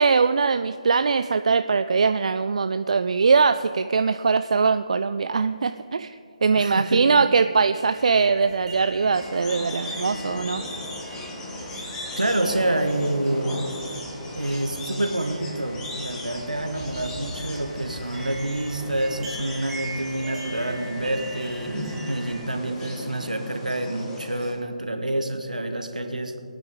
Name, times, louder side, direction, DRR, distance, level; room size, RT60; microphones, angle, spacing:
voice 1, 0.0-10.6, right 5 dB, 55° right, 10 dB, 0.4 m, -21 dB
voice 2, 6.5-7.0 11.7-13.6 14.3-26.4, right 1 dB, 80° right, 5 dB, 1.5 m, -27 dB
sound 1, 7.7-22.3, right 1 dB, 10° right, 2.2 m, -41 dB
sound 2, 9.1-24.5, left 1 dB, 15° left, 1.6 m, -37 dB
21.5 x 9.2 x 3.9 m, 2.4 s
figure-of-eight pair, 145°, 4 cm